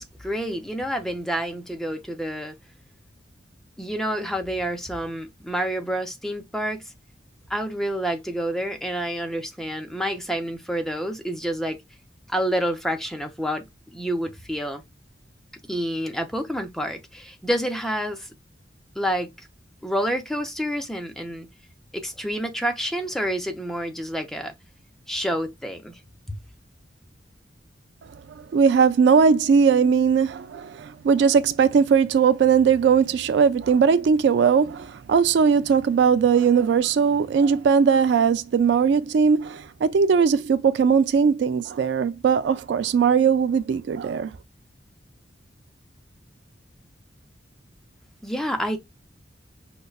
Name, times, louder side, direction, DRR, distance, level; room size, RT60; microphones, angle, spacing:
voice 1, 0.0-2.5 3.8-6.8 7.5-11.8 12.3-13.6 13.9-14.8 15.7-18.3 19.0-19.5 19.8-21.5 21.9-24.5 25.1-26.0 48.2-48.8, equal, ahead, 0.5 m, -28 dB
voice 2, 28.5-44.3, right 6 dB, 70° right, 0.3 m, -19 dB
5.1 x 2.1 x 2.3 m
head